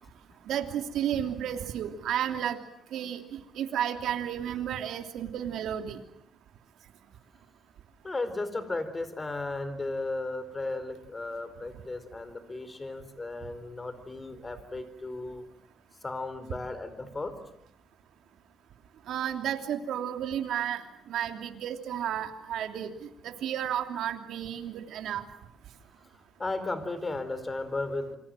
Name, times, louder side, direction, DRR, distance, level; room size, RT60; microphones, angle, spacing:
voice 1, 0.5-2.6 2.9-6.0 19.1-22.9 23.2-25.2, right 10 dB, 75° right, 7 dB, 3.0 m, -32 dB
voice 2, 8.0-15.4 16.0-17.4 26.4-28.1, left 2 dB, 25° left, 12 dB, 4.4 m, -35 dB
28.0 x 25.0 x 7.7 m, 0.72 s
cardioid pair, 90°, 0 cm